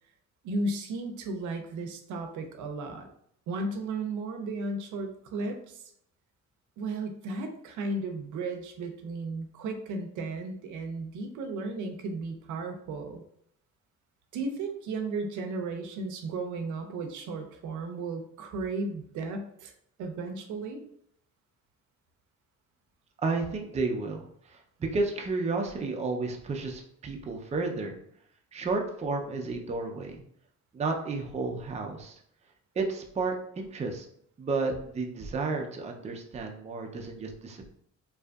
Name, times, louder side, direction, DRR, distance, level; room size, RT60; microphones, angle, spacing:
voice 1, 0.4-3.1 3.5-5.8 6.8-13.2 14.3-19.7 20.0-20.8, right 3 dB, 80° right, 5 dB, 0.5 m, -34 dB
voice 2, 23.2-27.9 28.5-30.2 30.7-32.2 32.8-34.1 34.4-37.7, right 3 dB, 25° right, 3 dB, 0.4 m, -32 dB
2.7 x 2.4 x 2.2 m, 0.68 s
cardioid pair, 90°, 30 cm